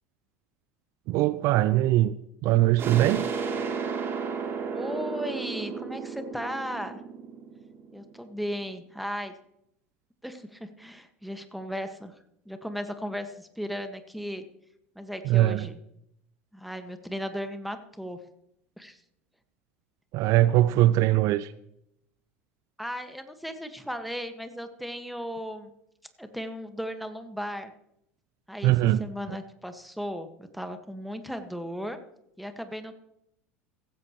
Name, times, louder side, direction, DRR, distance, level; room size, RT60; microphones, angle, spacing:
voice 1, 1.1-2.2 2.4-3.2 15.3-15.7 20.1-21.5 28.6-29.1, right 14 dB, 50° right, 16 dB, 0.5 m, -21 dB
sound 1, 2.8-8.3, right 5 dB, 35° right, 3.2 m, -33 dB
voice 2, 4.7-7.0 7.9-9.3 10.2-12.1 12.5-14.4 15.0-15.8 16.5-18.2 18.8-19.0 22.8-25.7 26.2-27.7 28.5-28.7 29.0-32.0 32.4-32.9, equal, ahead, 8 dB, 1.8 m, -36 dB
16.5 x 15.5 x 3.2 m, 0.78 s
figure-of-eight pair, 75°, 7 cm